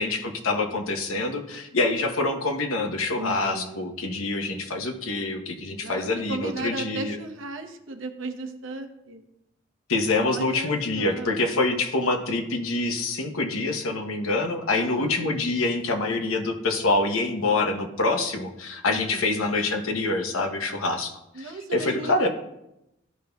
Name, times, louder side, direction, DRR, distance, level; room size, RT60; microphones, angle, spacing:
voice 1, 0.0-7.2 9.9-22.3, left 2 dB, 85° left, 4 dB, 0.9 m, -26 dB
voice 2, 3.1-3.8 5.8-9.2 10.2-10.7 11.0-11.4 14.7-15.2 18.9-19.4 21.3-22.3, right 2 dB, 70° right, 6 dB, 0.8 m, -36 dB
13.0 x 5.2 x 2.3 m, 0.87 s
head